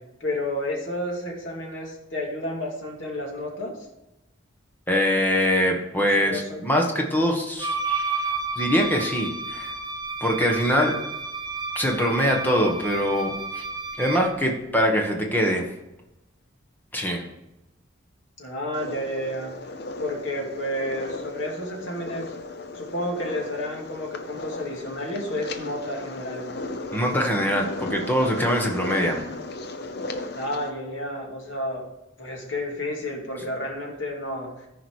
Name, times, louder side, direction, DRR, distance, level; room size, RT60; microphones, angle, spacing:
voice 1, 0.2-3.7 6.2-6.6 18.4-19.7 20.0-22.3 22.7-26.5 30.3-31.8 32.2-34.7, left 1 dB, 75° left, -1 dB, 2.5 m, -31 dB
voice 2, 4.9-9.7 10.2-11.0 11.7-13.6 14.0-15.7 16.9-17.2 26.9-29.2, equal, 10° left, 1 dB, 1.4 m, -23 dB
Wind instrument woodwind instrument, 7.6-14.4, right 3 dB, 20° right, 0.6 m, -31 dB
sound 1, 18.7-30.7, left 2 dB, 55° left, 0.8 m, -36 dB
14.0 x 5.0 x 4.7 m, 0.95 s
head